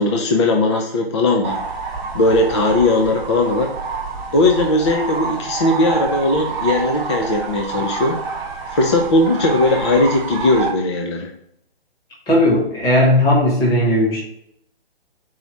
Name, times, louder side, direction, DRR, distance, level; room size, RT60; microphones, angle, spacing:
voice 1, 0.0-1.6 2.1-3.7 4.3-8.2 8.7-11.3, left 2 dB, 30° left, 3 dB, 0.5 m, -18 dB
sound 1, 1.4-10.7, right 4 dB, 10° right, 0.9 m, -27 dB
voice 2, 12.3-14.2, left 1 dB, 10° left, -5 dB, 1.5 m, -16 dB
4.7 x 4.1 x 5.8 m, 0.74 s
hypercardioid pair, 155°, 30 cm